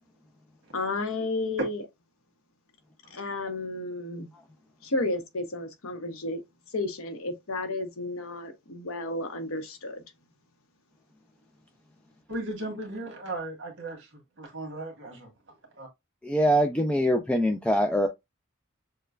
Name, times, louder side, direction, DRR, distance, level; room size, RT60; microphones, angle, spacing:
voice 1, 0.7-1.8 3.1-4.3 4.8-6.4 6.7-10.0, left 2 dB, 80° left, 0.9 m, -32 dB
voice 2, 12.3-14.1 14.4-15.3 15.8-15.9, right 2 dB, 60° right, 1.7 m, -36 dB
voice 3, 16.2-18.1, equal, 5° left, 0.3 m, -23 dB
6.5 x 2.2 x 2.3 m
head